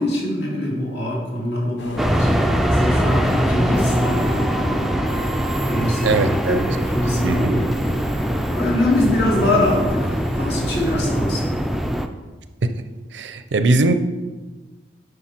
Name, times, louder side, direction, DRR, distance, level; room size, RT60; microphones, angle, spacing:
voice 1, 0.0-2.4 2.7-4.9 5.7-8.2 8.5-11.5, left 1 dB, 65° left, -4 dB, 2.5 m, -24 dB
sound 1, 1.8-11.2, left 1 dB, 85° left, 0.8 m, -36 dB
sound 2, 2.0-12.1, equal, ahead, 0.3 m, -22 dB
voice 2, 6.0-6.7 7.2-7.6 12.7-12.8 13.1-13.9, right 2 dB, 90° right, 10 dB, 0.6 m, -20 dB
9.7 x 5.2 x 4.4 m, 1.3 s
head